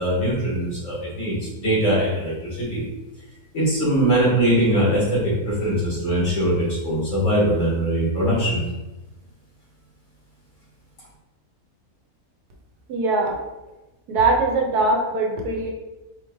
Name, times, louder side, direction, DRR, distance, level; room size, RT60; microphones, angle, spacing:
voice 1, 0.0-2.8 3.5-8.6, right 1 dB, 55° left, -7 dB, 2.1 m, -21 dB
voice 2, 12.9-13.4 14.1-15.7, right 2 dB, 85° right, 1 dB, 1.3 m, -21 dB
4.5 x 3.1 x 3.4 m, 1.0 s
omnidirectional pair, 1.6 m